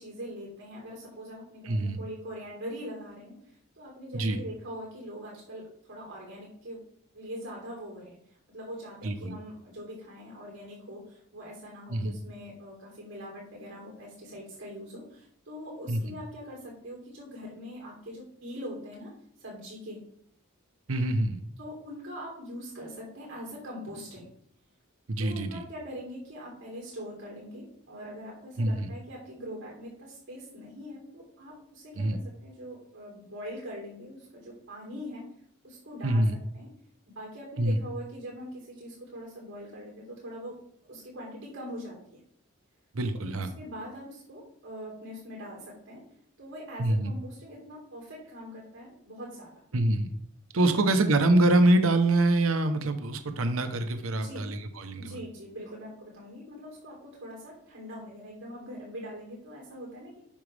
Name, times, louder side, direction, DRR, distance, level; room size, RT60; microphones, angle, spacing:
voice 1, 0.0-6.8 7.1-8.2 8.5-19.1 19.4-20.0 21.6-24.3 25.2-35.2 35.6-36.2 36.5-36.7 37.1-40.5 40.9-42.2 43.4-46.0 46.4-49.6 50.6-51.0 54.1-54.5 54.9-60.2, equal, 60° right, -3 dB, 3.4 m, -42 dB
voice 2, 1.7-2.0 4.1-4.4 9.0-9.3 11.9-12.1 15.9-16.0 20.9-21.4 25.1-25.6 28.6-28.9 32.0-32.2 36.0-36.3 37.6-37.8 42.9-43.5 46.8-47.1 49.7-50.1 50.5-55.2, right 1 dB, 80° right, 8 dB, 0.8 m, -25 dB
8.8 x 6.1 x 3.3 m, 0.65 s
head